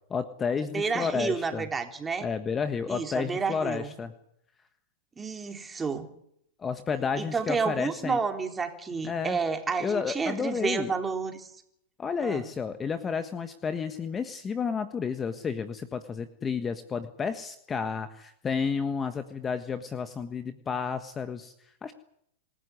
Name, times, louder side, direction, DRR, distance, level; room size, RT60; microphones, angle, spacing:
voice 1, 0.1-1.7 2.2-4.1 6.6-8.2 9.0-9.4 9.8-10.9 12.0-21.9, left 6 dB, 20° left, 10 dB, 1.4 m, -31 dB
voice 2, 0.7-2.3 2.9-3.9 5.2-6.1 7.2-11.5 12.2-12.5, right 5 dB, 15° right, 5 dB, 3.7 m, -30 dB
26.0 x 15.0 x 9.7 m, 0.74 s
hypercardioid pair, 115°, 0 cm